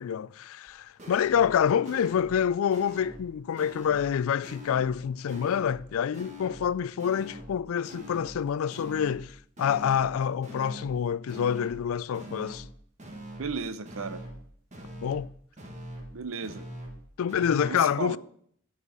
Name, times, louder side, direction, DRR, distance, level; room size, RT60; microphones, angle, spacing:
voice 1, 0.0-12.6 15.0-15.3 17.2-18.2, left 8 dB, 70° left, 0.3 m, -27 dB
sound 1, 0.7-0.8 1.0-1.6 1.9-2.4 2.7-3.3 3.6-4.1 4.4-5.0 5.3-5.9 6.1-6.7 7.0-7.6 7.9-8.4 8.7-9.3 9.6-10.1 10.4-11.0 11.3-11.9 12.1-12.7 13.0-13.6 13.8-14.4 14.7-15.3 15.6-16.1 16.4-17.0 17.3-17.6, equal, 35° right, 1.6 m, -43 dB
voice 2, 13.4-14.2 16.1-16.6 17.6-18.2, right 4 dB, 70° right, 0.7 m, -34 dB
9.7 x 5.7 x 7.2 m
head